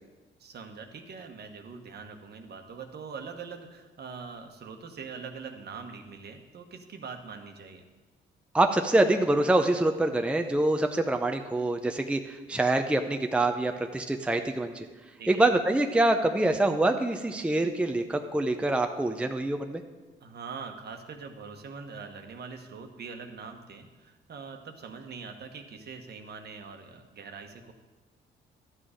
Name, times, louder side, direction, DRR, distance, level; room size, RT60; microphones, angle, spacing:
voice 1, 0.4-7.8 15.2-15.4 20.2-27.7, right 5 dB, 55° right, 5 dB, 1.2 m, -43 dB
voice 2, 8.5-14.9 15.3-19.8, right 2 dB, 5° right, 5 dB, 0.6 m, -25 dB
12.5 x 7.3 x 5.0 m, 1.3 s
cardioid pair, 90°, 20 cm